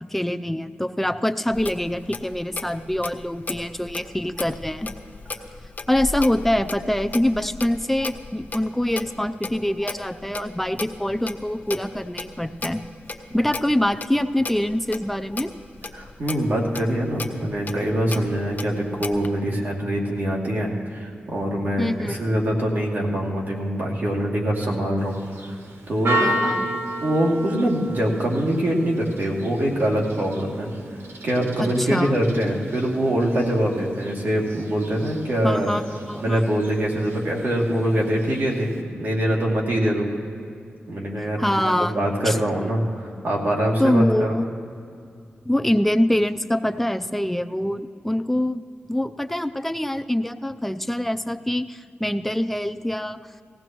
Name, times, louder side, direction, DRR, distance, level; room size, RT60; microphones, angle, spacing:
voice 1, 0.1-5.0 5.9-12.9 13.3-15.5 21.8-22.2 26.2-26.7 31.6-32.2 35.4-36.4 41.4-42.4 43.8-44.5 45.5-53.2, left 1 dB, 5° left, 9 dB, 0.4 m, -24 dB
Clock, 1.5-19.3, left 3 dB, 45° left, 0.8 m, -36 dB
voice 2, 15.9-25.1 25.9-26.5 27.0-30.7 31.2-35.7 36.2-40.1 40.9-44.3, right 1 dB, 55° right, -3 dB, 2.6 m, -24 dB
Church bell, 25.0-38.8, right 1 dB, 80° right, 1.0 m, -33 dB
19.0 x 16.0 x 3.0 m, 2.4 s
wide cardioid pair, 90°, 4 cm